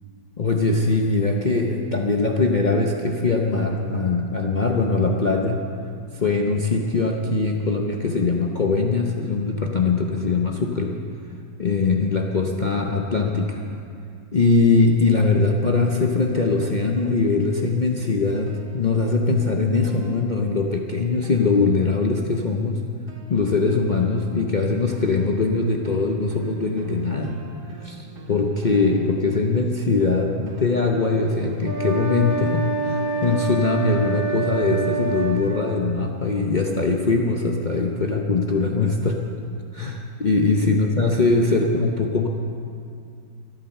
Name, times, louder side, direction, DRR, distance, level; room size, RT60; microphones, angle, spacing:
voice 1, 0.4-5.6 6.1-10.9 11.6-13.6 14.3-22.8 23.3-27.3 27.8-39.2 39.7-42.3, left 3 dB, 75° left, 1 dB, 0.4 m, -21 dB
sound 1, 18.5-20.9 21.2-22.2 23.1-34.6, right 3 dB, 60° right, 1.7 m, -44 dB
sound 2, 31.6-35.6, right 4 dB, 10° right, 2.0 m, -26 dB
13.0 x 12.0 x 6.6 m, 2.4 s
omnidirectional pair, 2.1 m